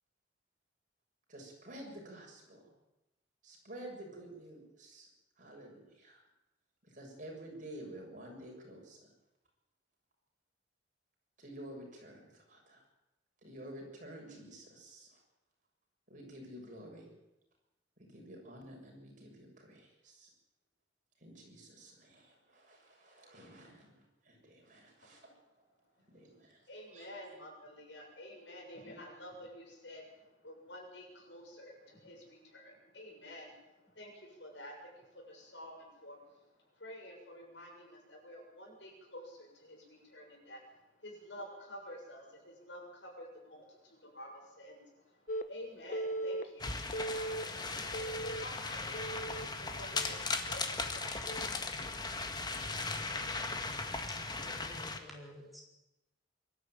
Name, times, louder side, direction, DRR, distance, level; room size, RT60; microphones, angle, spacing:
voice 1, 1.3-2.6 3.4-5.1 5.4-6.2 6.9-9.1 11.4-12.8 13.4-15.2 16.1-17.1 18.0-20.3 21.2-25.3 26.1-26.6 26.9-27.1, right 1 dB, 45° right, 0 dB, 6.9 m, -50 dB
voice 2, 26.7-51.6, equal, 80° left, 1 dB, 7.0 m, -50 dB
Telephone, 45.3-45.4 45.9-46.4 46.9-47.4 47.9-48.4 48.9-49.5 49.9-50.3 51.3-51.5, right 1 dB, 50° left, 1.3 m, -38 dB
sound 1, 46.6-55.0, left 3 dB, 25° left, 1.6 m, -38 dB
voice 3, 54.1-55.6, left 1 dB, ahead, -2 dB, 4.5 m, -51 dB
23.0 x 13.0 x 9.2 m, 0.94 s
head